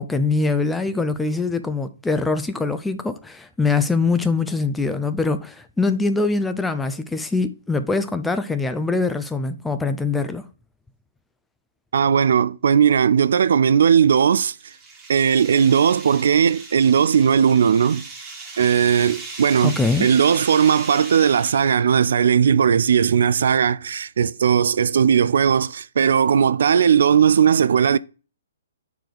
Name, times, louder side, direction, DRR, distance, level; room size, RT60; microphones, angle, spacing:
voice 1, 0.0-10.4 19.6-20.1, left 3 dB, 5° left, 0.4 m, -23 dB
voice 2, 11.9-14.6 15.1-18.0 18.6-28.0, right 7 dB, 70° right, 0.3 m, -17 dB
sound 1, 14.1-21.8, right 3 dB, 10° right, 1.4 m, -38 dB
6.7 x 4.7 x 3.9 m
hypercardioid pair, 155°, 0 cm